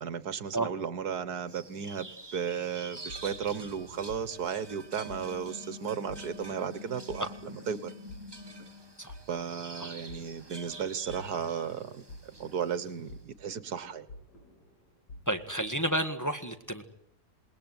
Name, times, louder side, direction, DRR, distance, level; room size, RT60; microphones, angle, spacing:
voice 1, 0.0-7.9 9.3-14.1, right 7 dB, 70° right, 15 dB, 1.8 m, -35 dB
sound 1, 1.5-13.2, right 3 dB, 15° right, 1.5 m, -48 dB
sound 2, 2.8-15.8, left 2 dB, 90° left, 8.1 m, -50 dB
sound 3, 5.0-8.9, left 3 dB, 40° left, 6.2 m, -47 dB
voice 2, 15.3-16.9, right 1 dB, 10° left, 6 dB, 1.7 m, -31 dB
28.0 x 20.0 x 9.6 m, 0.74 s
omnidirectional pair, 1.7 m